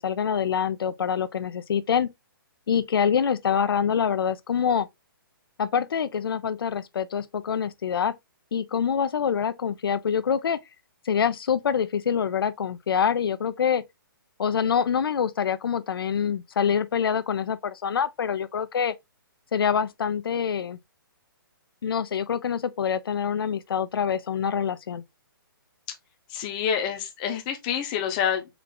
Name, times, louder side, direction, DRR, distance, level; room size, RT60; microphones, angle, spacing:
voice 1, 0.0-2.1 2.7-4.9 5.6-8.1 8.5-10.6 11.1-13.8 14.4-18.9 19.5-20.8 21.8-25.0, left 7 dB, 75° left, 0.5 m, -25 dB
voice 2, 26.3-28.5, left 8 dB, 20° left, 0.7 m, -27 dB
4.5 x 2.4 x 3.8 m
hypercardioid pair, 170°, 12 cm